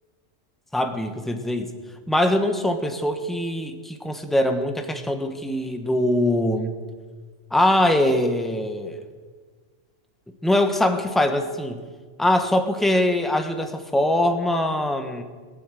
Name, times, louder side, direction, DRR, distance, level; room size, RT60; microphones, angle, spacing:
voice 1, 0.7-1.7 2.1-6.7 7.5-9.0 10.4-11.8 12.2-15.2, left 1 dB, ahead, 6 dB, 1.0 m, -22 dB
20.5 x 8.5 x 7.6 m, 1.5 s
omnidirectional pair, 1.3 m